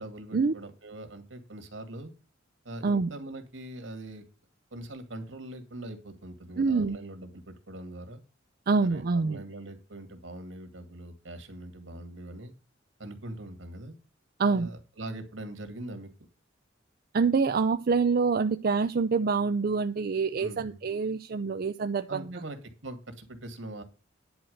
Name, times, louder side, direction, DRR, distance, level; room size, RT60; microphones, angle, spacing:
voice 1, 0.0-2.1 2.6-4.3 4.7-8.2 8.8-12.5 13.0-14.0 14.5-16.1 20.4-20.8 22.1-23.8, right 1 dB, 75° right, 8 dB, 2.2 m, -42 dB
voice 2, 6.6-7.0 8.7-9.4 14.4-14.7 17.1-22.4, right 4 dB, 50° right, 9 dB, 0.5 m, -26 dB
10.5 x 4.5 x 7.8 m, 0.32 s
head